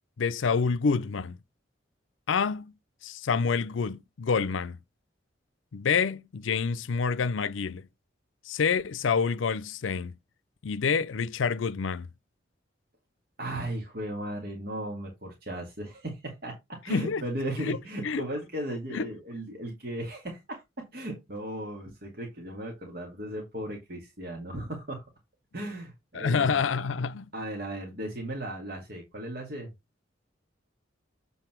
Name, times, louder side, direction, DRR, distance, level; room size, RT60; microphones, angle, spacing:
voice 1, 0.2-1.4 2.3-2.7 3.0-4.8 5.7-7.9 8.4-10.1 10.6-12.1 16.9-17.2 17.6-17.8 18.0-18.2 18.9-19.1 26.1-27.3, left 5 dB, 90° left, 0.5 m, -27 dB
voice 2, 13.4-25.0 25.5-26.6 27.3-29.7, right 1 dB, 50° right, 2.2 m, -36 dB
7.9 x 4.1 x 4.5 m
head